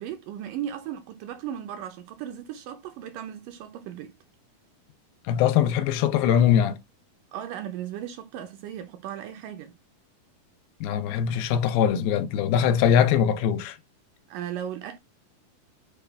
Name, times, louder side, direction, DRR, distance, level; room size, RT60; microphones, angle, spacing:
voice 1, 0.0-4.1 7.3-9.7 14.3-15.0, right 10 dB, 80° right, 2.0 m, -36 dB
voice 2, 5.3-6.8 10.8-13.8, left 9 dB, 85° left, 2.5 m, -22 dB
6.7 x 2.3 x 3.3 m
omnidirectional pair, 4.1 m